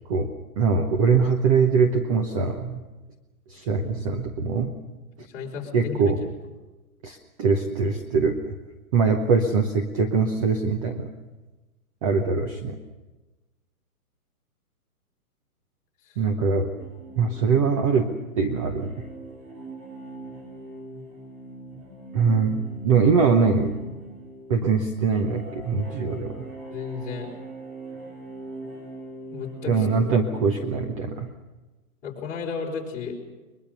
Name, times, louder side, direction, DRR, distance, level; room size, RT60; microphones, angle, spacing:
voice 1, 0.6-2.8 3.5-4.7 5.7-6.2 7.0-8.5 8.9-11.1 12.0-12.8 16.2-16.7 17.2-18.1 18.4-19.0 22.1-23.7 24.5-26.5 29.7-31.3, right 5 dB, 20° right, 5 dB, 0.9 m, -22 dB
voice 2, 5.3-6.0 16.0-16.2 26.7-27.3 29.3-29.9 32.0-33.2, left 5 dB, 15° left, -3 dB, 4.8 m, -33 dB
sound 1, 16.8-30.9, right 2 dB, 40° right, 7.5 m, -42 dB
22.0 x 22.0 x 6.8 m, 1.2 s
hypercardioid pair, 165°, 45 cm